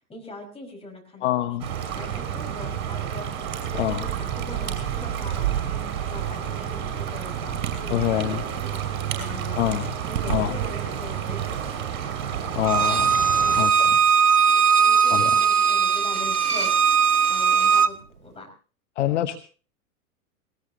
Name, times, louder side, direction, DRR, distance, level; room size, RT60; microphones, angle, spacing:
voice 1, 0.1-1.4 1.7-3.4 3.7-8.8 9.2-9.6 10.0-11.8 13.4-14.0 14.8-16.7 17.3-18.5, left 2 dB, 15° left, 1 dB, 5.2 m, -41 dB
voice 2, 1.2-1.7 3.8-4.0 7.9-8.4 9.6-9.9 10.3-10.6 12.5-13.2 13.6-14.0 15.1-15.4 19.0-19.4, left 13 dB, 50° left, 9 dB, 1.1 m, -25 dB
sound 1, 1.6-13.6, right 9 dB, 45° right, 5.7 m, -29 dB
Bowed string instrument, 12.6-17.9, right 7 dB, 85° right, 1.0 m, -19 dB
19.5 x 19.5 x 2.9 m, 0.37 s
figure-of-eight pair, 100°, 45 cm